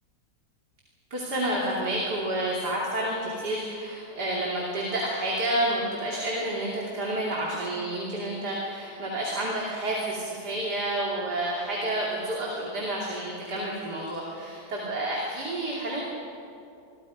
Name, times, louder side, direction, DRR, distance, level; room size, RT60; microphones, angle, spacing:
voice 1, 1.1-16.0, right 1 dB, 75° right, -3 dB, 3.5 m, -29 dB
26.5 x 23.0 x 5.1 m, 2.6 s
omnidirectional pair, 1.8 m